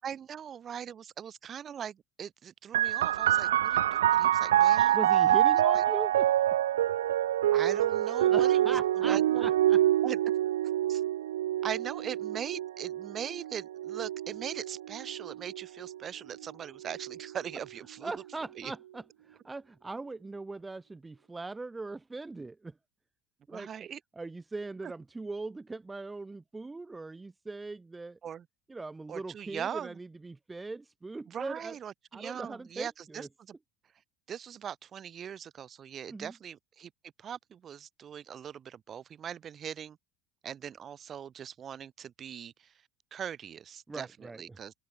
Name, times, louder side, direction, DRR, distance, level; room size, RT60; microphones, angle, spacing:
voice 1, 0.0-5.0 5.6-5.8 7.5-8.8 9.0-9.5 10.0-10.2 10.9-11.0 11.6-18.1 18.6-18.7 23.5-24.0 24.8-24.9 28.2-28.5 29.1-30.0 31.3-33.6 34.3-36.9 37.2-40.0 40.4-42.7 43.1-44.7, right 8 dB, 35° right, 7.3 m, -40 dB
sound 1, 2.7-16.0 16.8-17.6, right 12 dB, 70° right, 0.3 m, -26 dB
voice 2, 4.9-6.3 8.3-9.8 18.0-22.8 23.5-23.7 24.2-28.2 28.7-31.8 32.1-33.3 36.1-36.3 43.9-44.6, right 3 dB, 15° right, 3.2 m, -40 dB
open air
figure-of-eight pair, 70°, 0 cm